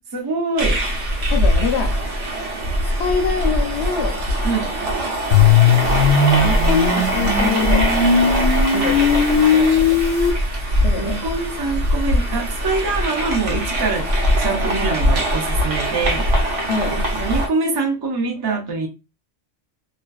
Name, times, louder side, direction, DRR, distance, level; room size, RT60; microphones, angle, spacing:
voice 1, 0.1-0.8 4.4-4.7 11.0-14.1 14.4-16.3 16.8-18.9, right 4 dB, 40° right, 0.3 m, -24 dB
sound 1, 0.6-17.5, equal, 75° right, 1.0 m, -21 dB
voice 2, 1.3-1.9 3.0-4.2 6.4-8.4 8.7-10.0 10.8-11.2 16.7-17.0, left 6 dB, 70° left, 0.8 m, -25 dB
sound 2, 5.3-10.3, left 6 dB, 90° left, 1.0 m, -17 dB
2.5 x 2.2 x 2.2 m
omnidirectional pair, 1.3 m